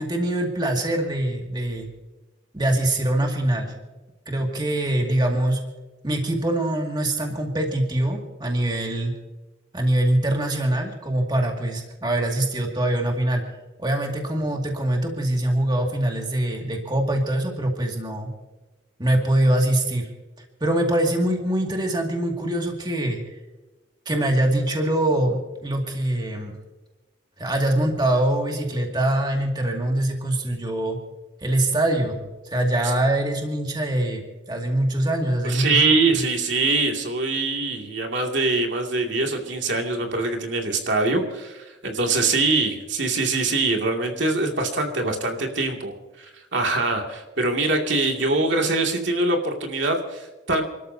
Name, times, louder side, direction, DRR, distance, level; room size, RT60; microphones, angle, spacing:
voice 1, 0.0-1.9 2.5-3.7 4.3-5.6 6.0-9.1 9.7-13.4 13.8-18.3 19.0-20.1 20.6-23.2 24.1-26.6 27.4-31.0 31.4-35.8, right 1 dB, 20° right, 1 dB, 2.2 m, -23 dB
voice 2, 35.4-50.6, right 3 dB, 70° right, 2 dB, 2.4 m, -23 dB
29.5 x 13.5 x 2.8 m, 1.1 s
head